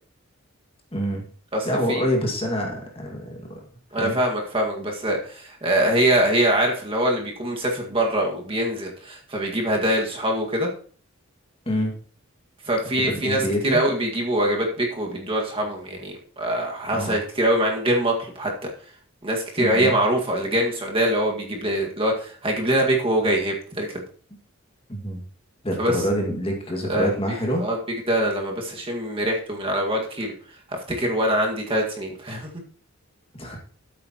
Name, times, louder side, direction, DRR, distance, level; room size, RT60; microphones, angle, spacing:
voice 1, 0.9-1.3 1.7-3.4 4.0-4.2 11.7-12.0 13.0-13.8 16.9-17.2 19.6-19.9 24.9-25.2 25.6-27.7 33.4-33.6, equal, 25° left, 1 dB, 2.0 m, -26 dB
voice 2, 1.5-2.1 3.9-10.7 12.7-18.5 19.2-24.0 25.8-25.9 26.9-27.1 27.6-27.8 28.1-30.3 30.7-32.5, right 1 dB, 25° right, 0 dB, 1.9 m, -23 dB
12.5 x 8.5 x 3.0 m, 0.43 s
head